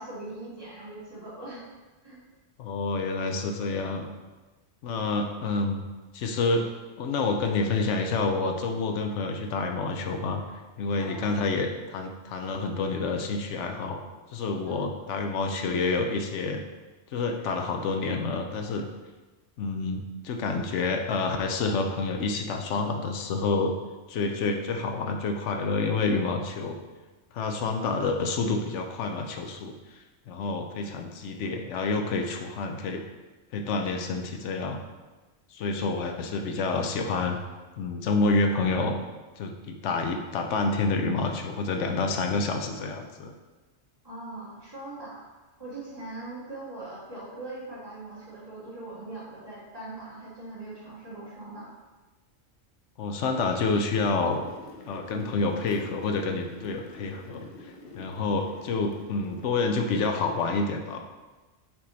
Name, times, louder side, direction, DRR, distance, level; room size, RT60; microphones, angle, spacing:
voice 1, 0.0-1.6 2.0-2.2 11.0-11.4 14.7-14.9 44.0-45.3 45.6-51.7, right 2 dB, 20° right, -8 dB, 2.1 m, -41 dB
voice 2, 2.6-4.1 4.8-5.8 6.1-6.7 7.0-10.4 10.8-14.0 14.3-16.6 17.1-18.8 19.6-23.7 24.1-26.8 27.3-30.0 30.3-33.0 33.5-34.8 35.5-37.4 37.8-39.0 39.4-43.3 53.0-54.4 54.9-61.0, left 3 dB, 85° left, 4 dB, 1.0 m, -28 dB
sound 1, 53.5-60.4, left 1 dB, 55° left, 0.9 m, -46 dB
5.6 x 4.9 x 4.0 m, 1.2 s
omnidirectional pair, 1.2 m